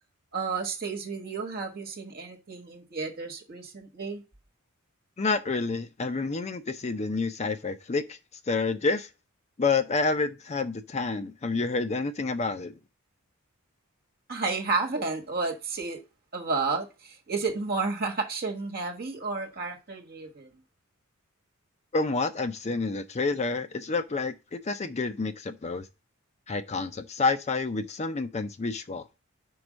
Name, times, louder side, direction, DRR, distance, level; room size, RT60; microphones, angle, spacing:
voice 1, 0.3-4.2 14.3-16.0 16.3-20.5, right 4 dB, 45° right, 1.5 m, -31 dB
voice 2, 5.2-8.2 8.5-9.1 9.6-12.7 21.9-25.9 26.5-29.0, left 3 dB, 30° left, 0.5 m, -29 dB
5.3 x 4.7 x 6.1 m
head